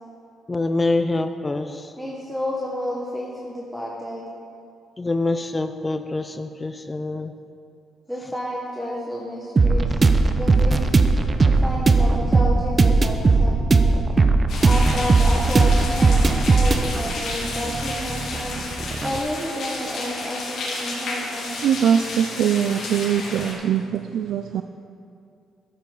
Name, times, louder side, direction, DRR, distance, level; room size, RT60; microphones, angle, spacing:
voice 1, 0.5-1.9 5.0-7.3, left 2 dB, 20° left, 9 dB, 0.5 m, -25 dB
voice 2, 2.0-4.3 8.1-10.0 10.3-10.9 11.5-13.9 14.6-18.6 19.0-21.5, equal, ahead, -5 dB, 1.4 m, -30 dB
sound 1, 9.6-19.2, right 3 dB, 30° right, 0.7 m, -18 dB
sound 2, 14.5-23.5, left 3 dB, 65° left, 2.2 m, -32 dB
voice 3, 21.6-24.6, right 8 dB, 75° right, 7 dB, 0.4 m, -22 dB
13.0 x 8.5 x 4.0 m, 2.4 s
cardioid pair, 90°, 0 cm